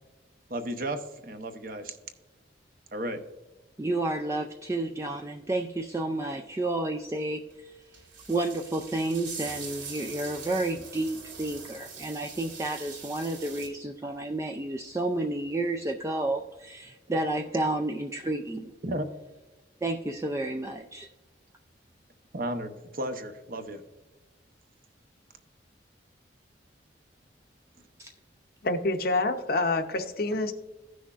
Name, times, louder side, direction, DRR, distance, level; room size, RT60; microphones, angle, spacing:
voice 1, 0.5-2.0 2.9-3.2 18.8-19.1 22.3-23.8, right 1 dB, 45° right, 0.8 m, -34 dB
voice 2, 3.8-7.7 8.3-18.7 19.8-21.1 28.0-28.1, right 2 dB, 15° right, 0.3 m, -31 dB
sound 1, 7.5-7.6 7.9-13.7, right 5 dB, 85° right, 2.2 m, -42 dB
voice 3, 28.6-30.5, left 2 dB, 50° left, 0.7 m, -27 dB
15.5 x 6.2 x 2.4 m
head